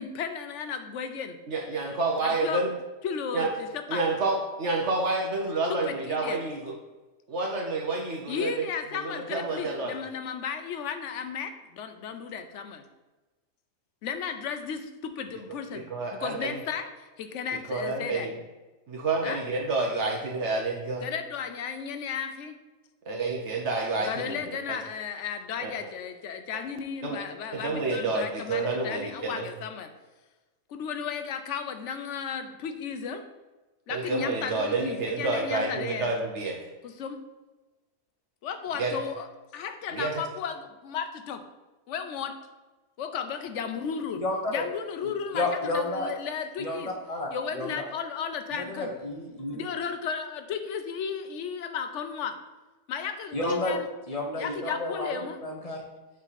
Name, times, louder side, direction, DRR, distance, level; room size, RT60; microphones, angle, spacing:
voice 1, 0.0-1.4 2.2-2.6 3.0-4.0 5.7-6.4 8.3-12.8 14.0-15.9 16.2-18.3 19.2-19.4 21.0-22.5 24.0-29.9 30.7-33.2 33.9-36.1 36.8-37.2 38.4-39.3 39.5-41.4 41.9-42.3 43.0-46.9 47.3-48.9 49.5-52.3 52.9-53.8 54.4-55.4, left 7 dB, 65° left, 7 dB, 0.9 m, -34 dB
voice 2, 1.5-2.7 3.3-3.5 3.9-6.6 7.3-8.7 8.9-9.9 15.7-16.6 17.7-18.3 18.9-21.1 23.1-24.3 24.7-24.8 25.6-25.7 27.0-27.2 27.5-29.5 33.9-36.6 38.8-38.9 39.9-40.1, right 3 dB, 60° right, 1 dB, 1.0 m, -29 dB
voice 3, 44.2-44.7 45.0-46.1 46.6-47.8 48.5-49.6 53.3-53.8 54.1-55.1 55.4-55.9, left 2 dB, 30° left, 0 dB, 1.0 m, -31 dB
8.4 x 3.7 x 4.1 m, 1.2 s
omnidirectional pair, 1.5 m